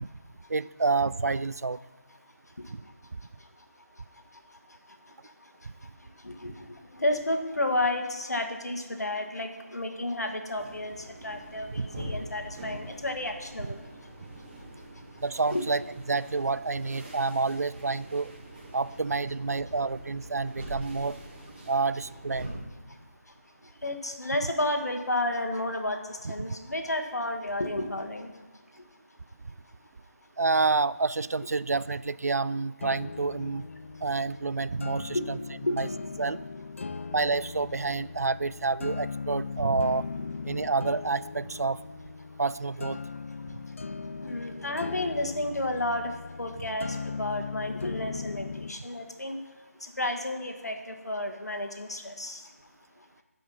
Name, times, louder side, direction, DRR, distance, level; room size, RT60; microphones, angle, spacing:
voice 1, 0.5-1.8 2.7-2.8 11.8-11.9 15.2-15.8 16.1-18.3 18.7-21.2 21.7-22.5 30.4-33.7 34.0-35.4 35.7-35.9 36.2-36.4 37.1-40.1 40.4-41.8 42.4-43.0, right 3 dB, 70° right, 17 dB, 0.4 m, -28 dB
voice 2, 6.2-6.7 6.9-13.8 15.5-15.6 23.8-28.3 35.1-35.3 35.6-35.8 40.2-40.3 44.2-46.1 46.4-49.4 49.8-52.4, left 1 dB, 80° left, 6 dB, 1.5 m, -31 dB
sound 1, 10.6-22.6, right 1 dB, 35° right, 2.3 m, -43 dB
sound 2, 32.8-48.8, left 4 dB, 50° left, 0.3 m, -39 dB
11.0 x 5.3 x 5.6 m, 1.4 s
figure-of-eight pair, 160°, 9 cm